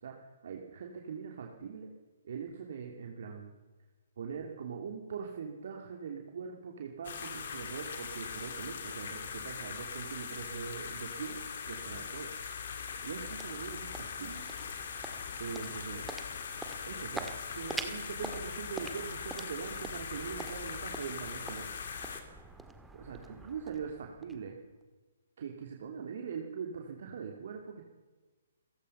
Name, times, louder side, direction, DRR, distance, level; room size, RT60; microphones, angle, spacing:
voice 1, 0.0-1.9 2.2-3.5 4.2-11.4 11.7-12.3 13.0-14.4 15.4-16.1 16.8-21.7 22.9-24.6 25.4-27.8, right 6 dB, 55° right, 2 dB, 2.9 m, -42 dB
sound 1, 7.0-22.2, left 6 dB, 55° left, 3.2 m, -41 dB
sound 2, 12.7-24.8, right 3 dB, 5° right, 1.9 m, -46 dB
28.5 x 16.0 x 5.7 m, 1.3 s
figure-of-eight pair, 130°, 0 cm